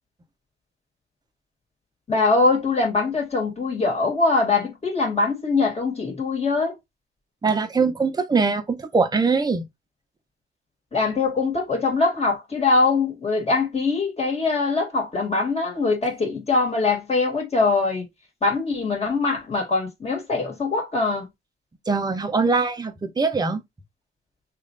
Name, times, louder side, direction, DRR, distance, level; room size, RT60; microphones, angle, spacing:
voice 1, 2.1-6.8 10.9-18.1 18.4-21.3, left 3 dB, 30° left, 2.0 m, -22 dB
voice 2, 7.4-9.7 21.9-23.6, right 4 dB, 20° right, 0.8 m, -22 dB
3.2 x 2.5 x 3.8 m
cardioid pair, 90°, 20 cm